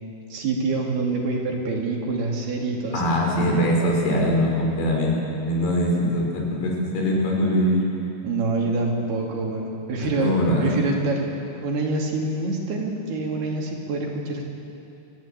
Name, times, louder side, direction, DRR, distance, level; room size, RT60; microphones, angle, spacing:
voice 1, 0.3-3.0 3.4-3.6 8.2-10.3 10.6-11.3 11.6-14.4, right 3 dB, 65° right, -1 dB, 4.7 m, -26 dB
voice 2, 2.9-7.8 10.0-10.9, equal, 75° left, -1 dB, 6.4 m, -22 dB
27.0 x 16.0 x 8.9 m, 2.8 s
omnidirectional pair, 4.9 m